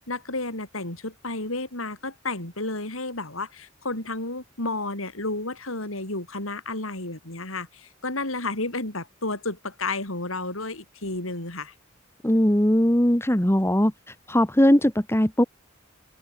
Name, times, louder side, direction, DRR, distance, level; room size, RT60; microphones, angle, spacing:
voice 1, 0.0-11.7, left 2 dB, 70° left, 6.4 m, -32 dB
voice 2, 12.2-13.9 14.3-15.4, equal, 10° left, 2.0 m, -19 dB
head